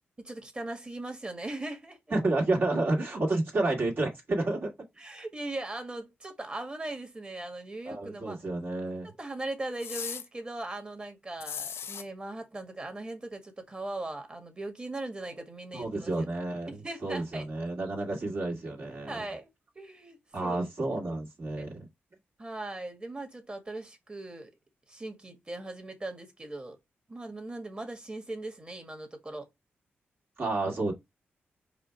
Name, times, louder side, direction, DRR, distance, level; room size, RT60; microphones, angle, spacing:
voice 1, 0.2-2.0 5.0-8.4 9.2-16.2 16.7-17.4 19.1-19.5 19.7-20.6 21.6-21.7 22.4-24.5 24.9-26.8 27.1-29.5, right 2 dB, 25° right, 1.6 m, -39 dB
voice 2, 2.1-4.7 7.9-9.1 15.7-19.2 20.3-21.9 30.4-30.9, right 2 dB, 55° right, 2.1 m, -30 dB
sound 1, 9.8-10.3 11.4-12.0, left 7 dB, 75° left, 0.5 m, -37 dB
4.9 x 2.3 x 4.5 m
cardioid pair, 75°, 4 cm